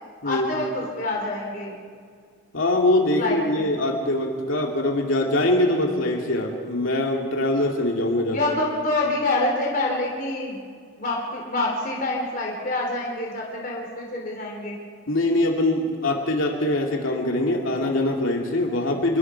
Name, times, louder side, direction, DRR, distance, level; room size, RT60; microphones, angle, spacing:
voice 1, 0.2-1.8 3.2-3.7 8.3-10.6 11.0-14.8, left 2 dB, 40° left, -2 dB, 3.6 m, -26 dB
voice 2, 2.5-8.4 15.1-19.2, left 1 dB, 85° left, 1 dB, 2.4 m, -23 dB
27.5 x 22.0 x 4.6 m, 2.1 s
head